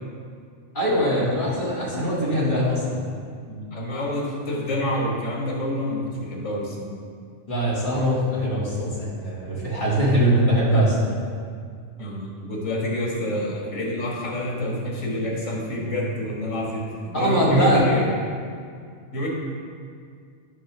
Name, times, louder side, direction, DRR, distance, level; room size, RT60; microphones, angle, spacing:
voice 1, 0.7-3.0 7.5-11.1 17.1-17.9, equal, 40° left, -7 dB, 2.1 m, -22 dB
voice 2, 3.5-7.0 12.0-18.0 19.1-19.3, left 1 dB, 90° left, -3 dB, 1.8 m, -28 dB
9.4 x 3.5 x 6.0 m, 2.2 s
omnidirectional pair, 1.3 m